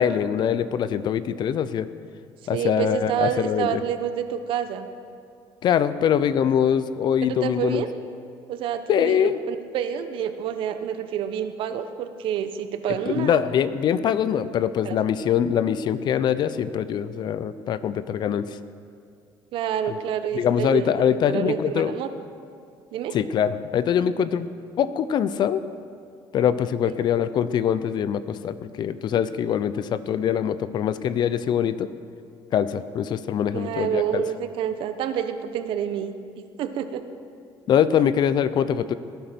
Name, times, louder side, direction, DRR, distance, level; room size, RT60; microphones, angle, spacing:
voice 1, 0.0-1.9 2.5-3.8 5.6-7.8 8.9-9.4 13.1-18.4 19.9-20.0 20.3-21.9 23.1-24.5 24.8-25.6 26.3-31.9 32.5-34.2 37.7-38.9, left 8 dB, 50° left, 14 dB, 0.6 m, -23 dB
voice 2, 2.5-4.9 7.2-7.9 8.5-13.4 14.8-15.0 19.5-22.1 22.9-23.2 26.8-26.9 33.5-36.1 36.6-37.0, right 9 dB, 70° right, 9 dB, 1.0 m, -28 dB
17.5 x 10.0 x 6.1 m, 2.4 s
cardioid pair, 115°, 9 cm